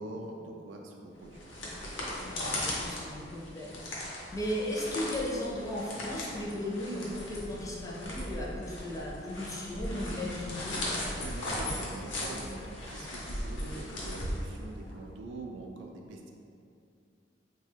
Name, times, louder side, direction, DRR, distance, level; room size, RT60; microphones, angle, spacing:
voice 1, 0.0-1.6 11.2-16.3, right 2 dB, 75° right, 2 dB, 0.4 m, -43 dB
sound 1, 1.2-14.9, left 1 dB, 80° left, 0.7 m, -38 dB
voice 2, 2.2-3.7 4.3-10.8, left 1 dB, 20° left, -4 dB, 0.4 m, -36 dB
3.1 x 2.2 x 3.3 m, 2.5 s
head